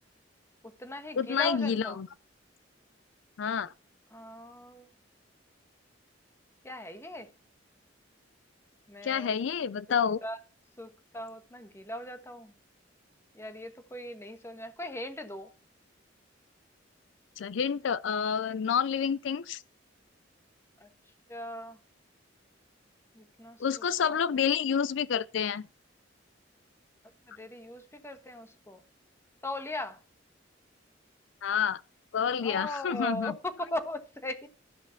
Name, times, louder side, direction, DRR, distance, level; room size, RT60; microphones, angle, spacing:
voice 1, 0.6-2.0 4.1-4.9 6.6-7.3 8.9-9.4 10.2-10.4 10.8-12.5 13.3-15.5 20.8-20.9 21.3-21.8 23.1-24.2 27.3-28.8 29.4-30.0 32.4-34.5, left 1 dB, 15° left, 1.2 m, -39 dB
voice 2, 1.2-2.1 3.4-3.7 9.0-10.2 17.4-19.6 23.6-25.7 31.4-31.8 32.1-33.3, left 7 dB, 70° left, 0.4 m, -28 dB
13.5 x 5.6 x 5.8 m
head